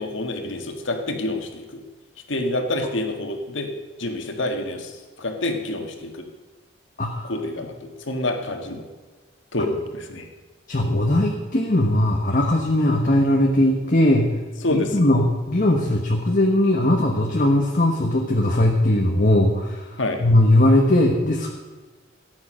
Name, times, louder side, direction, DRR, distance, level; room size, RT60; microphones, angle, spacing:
voice 1, 0.0-1.8 2.3-3.7 4.0-6.3 7.2-8.9 9.5-10.3 14.6-15.1 20.0-20.2, left 2 dB, 65° left, 4 dB, 1.8 m, -27 dB
voice 2, 7.0-7.3 10.7-14.3 14.7-19.9 20.2-21.5, left 1 dB, 40° left, 1 dB, 1.2 m, -19 dB
14.0 x 9.7 x 6.4 m, 1.3 s
head